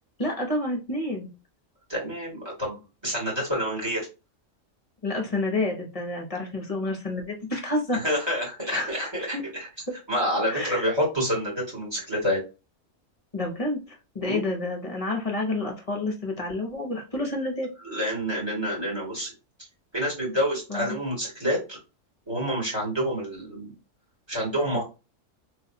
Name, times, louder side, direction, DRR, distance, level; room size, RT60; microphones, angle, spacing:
voice 1, 0.2-1.3 5.0-8.0 8.7-9.4 10.5-10.9 13.3-13.8 14.1-17.7 20.7-21.0, left 2 dB, 30° left, 1 dB, 0.9 m, -29 dB
voice 2, 1.9-4.1 7.9-9.7 10.1-12.4 14.2-14.4 17.8-19.3 19.9-21.8 22.3-23.7 24.3-24.8, equal, 20° right, -4 dB, 2.0 m, -28 dB
3.3 x 3.1 x 2.8 m, 0.29 s
omnidirectional pair, 1.3 m